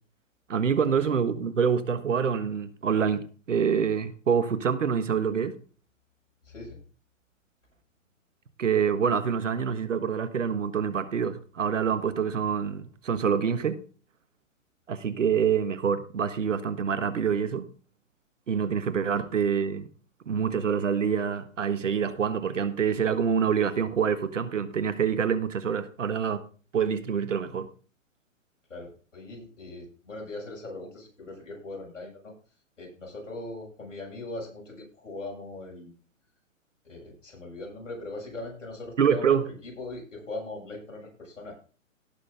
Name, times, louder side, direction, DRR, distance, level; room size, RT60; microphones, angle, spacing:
voice 1, 0.5-5.6 8.6-13.8 14.9-17.6 18.5-19.9 20.3-26.4 26.7-27.7 39.0-39.4, right 7 dB, 65° right, 1.5 m, -26 dB
voice 2, 6.5-6.8 19.1-19.3 28.7-32.3 32.8-35.9 36.8-39.4 39.6-41.6, left 2 dB, 65° left, 7.1 m, -40 dB
17.5 x 6.6 x 3.8 m
figure-of-eight pair, 125°, 40 cm